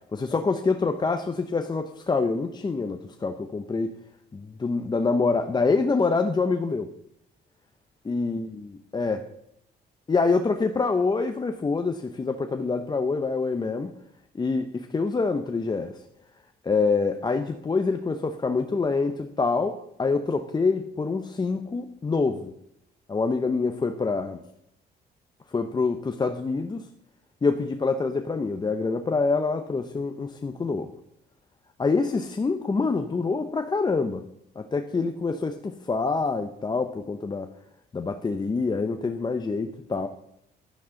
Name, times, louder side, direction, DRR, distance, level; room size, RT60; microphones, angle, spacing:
voice 1, 0.1-3.9 4.3-6.9 8.0-9.3 10.1-13.9 14.3-16.0 16.6-22.5 23.1-24.4 25.5-26.8 27.4-30.9 31.8-34.3 34.6-37.5 37.9-40.1, left 4 dB, 25° left, 6 dB, 0.7 m, -26 dB
10.5 x 9.4 x 3.8 m, 0.77 s
cardioid pair, 100°, 18 cm